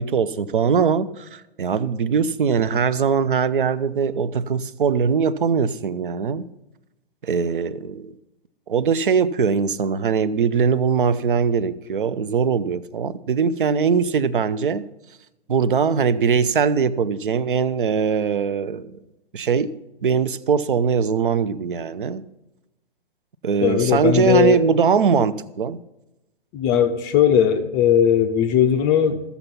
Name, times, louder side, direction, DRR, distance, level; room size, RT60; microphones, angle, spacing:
voice 1, 0.0-6.4 7.2-8.1 8.7-14.9 15.5-18.9 19.3-19.7 20.0-22.2 23.4-25.8, right 6 dB, 60° right, 0.7 m, -21 dB
voice 2, 23.6-24.6 26.5-29.2, left 9 dB, 20° left, 0.5 m, -18 dB
14.5 x 7.0 x 5.8 m
figure-of-eight pair, 120°, 29 cm